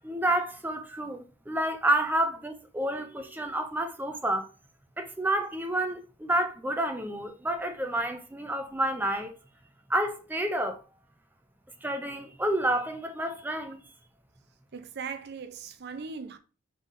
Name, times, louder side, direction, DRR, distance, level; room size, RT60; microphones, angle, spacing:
voice 1, 0.0-4.5 5.0-9.3 9.9-10.8 11.8-13.8, right 1 dB, 10° right, 0.5 m, -29 dB
voice 2, 14.7-16.4, right 5 dB, 55° right, 0.5 m, -39 dB
3.8 x 3.7 x 3.7 m
head